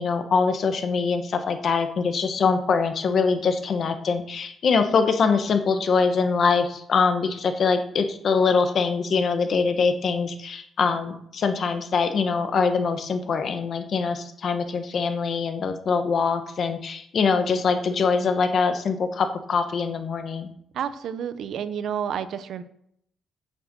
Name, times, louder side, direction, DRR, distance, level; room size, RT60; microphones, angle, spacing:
voice 1, 0.0-20.5, left 5 dB, 45° left, 7 dB, 1.1 m, -23 dB
voice 2, 20.7-22.6, right 8 dB, 65° right, 12 dB, 0.7 m, -30 dB
9.2 x 6.6 x 6.7 m, 0.70 s
cardioid pair, 170°, 0 cm